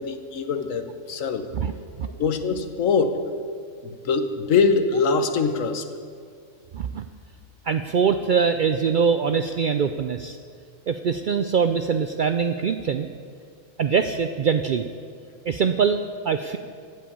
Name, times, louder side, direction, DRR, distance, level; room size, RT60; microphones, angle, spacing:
voice 1, 0.0-1.5 2.2-3.2 3.8-5.8, left 5 dB, 85° left, 9 dB, 1.3 m, -23 dB
voice 2, 6.7-7.1 7.7-10.4 10.9-13.1 13.8-14.9 15.5-16.6, right 6 dB, 65° right, 8 dB, 0.4 m, -23 dB
16.0 x 5.5 x 8.4 m, 2.1 s
omnidirectional pair, 1.3 m